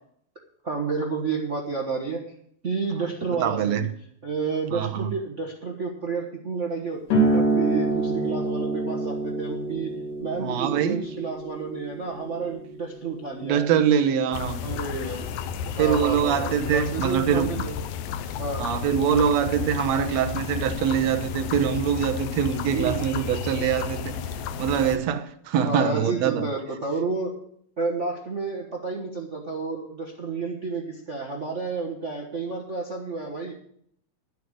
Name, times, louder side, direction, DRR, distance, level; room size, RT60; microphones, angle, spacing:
voice 1, 0.6-2.3 2.6-3.9 4.2-9.9 10.2-13.7 14.6-15.3 15.7-17.7 18.4-18.6 22.7-23.4 25.6-27.4 27.8-33.6, right 4 dB, 45° right, 0.9 m, -30 dB
voice 2, 3.3-3.9 4.7-5.1 10.4-11.0 13.4-14.6 15.8-17.6 18.6-24.2 24.6-26.5, right 8 dB, 70° right, 2.0 m, -24 dB
sound 1, 7.1-14.2, right 2 dB, 65° left, 4.0 m, -27 dB
sound 2, 14.3-25.0, left 7 dB, 80° left, 2.1 m, -32 dB
11.5 x 8.1 x 6.4 m
omnidirectional pair, 3.4 m